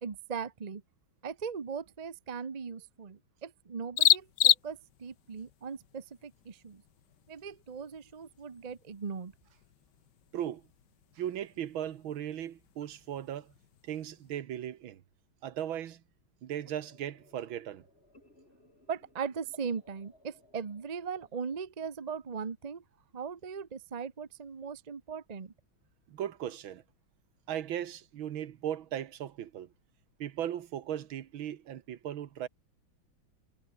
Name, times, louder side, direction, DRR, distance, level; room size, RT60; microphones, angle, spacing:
voice 1, 0.0-0.8 1.2-6.8 7.3-9.3 18.9-22.8 23.1-25.5, right 6 dB, 30° right, 0.7 m, -39 dB
sound 1, 4.0-14.4, left 12 dB, 65° left, 1.4 m, -34 dB
voice 2, 11.2-13.5 13.8-15.0 15.4-16.0 16.4-17.8 26.1-26.8 27.5-29.7 30.2-32.5, right 10 dB, 75° right, 1.9 m, -37 dB
sound 2, 16.5-21.6, left 1 dB, 25° left, 7.6 m, -62 dB
omnidirectional pair, 2.3 m